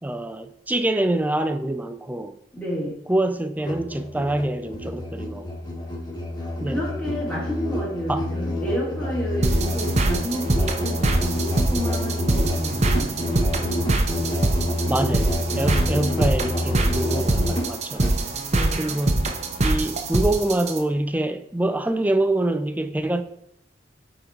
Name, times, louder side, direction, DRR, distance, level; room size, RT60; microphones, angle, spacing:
voice 1, 0.0-2.4 3.1-5.5 6.6-6.8 8.1-8.3 14.8-18.1 18.8-19.3 19.6-23.2, right 1 dB, 10° right, 0.4 m, -25 dB
voice 2, 2.5-3.0 6.4-13.5 18.5-18.9, equal, 5° left, 2.5 m, -31 dB
Musical instrument, 3.6-18.2, left 1 dB, 25° left, 1.2 m, -28 dB
sound 1, 9.4-20.8, right 2 dB, 40° right, 0.8 m, -24 dB
8.9 x 4.0 x 4.5 m
head